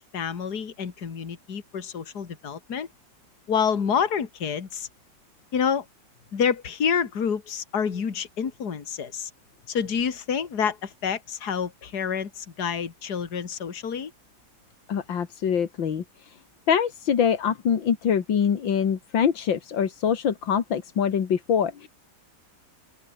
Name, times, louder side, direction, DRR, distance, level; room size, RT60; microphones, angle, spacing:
voice 1, 0.0-2.9 3.5-4.9 5.5-5.9 6.3-9.3 9.7-14.1, left 7 dB, 60° left, 2.5 m, -28 dB
voice 2, 14.9-16.4 16.7-21.9, left 7 dB, 90° left, 2.5 m, -24 dB
open air
omnidirectional pair, 2.0 m